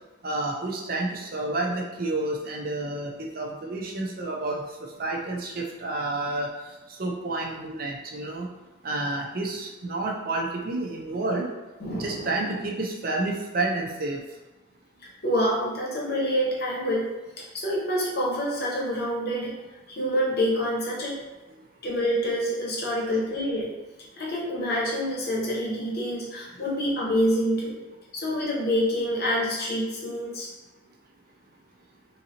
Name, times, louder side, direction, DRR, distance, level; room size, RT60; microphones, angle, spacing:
voice 1, 0.2-8.5 8.8-11.5 11.9-14.2, right 2 dB, 45° right, 0 dB, 0.5 m, -30 dB
voice 2, 11.8-12.3 15.2-17.1 17.4-19.5 19.9-21.2 21.8-23.7 24.2-27.8 28.1-30.5, equal, 50° left, -3 dB, 0.8 m, -27 dB
3.9 x 2.6 x 2.8 m, 1.1 s
head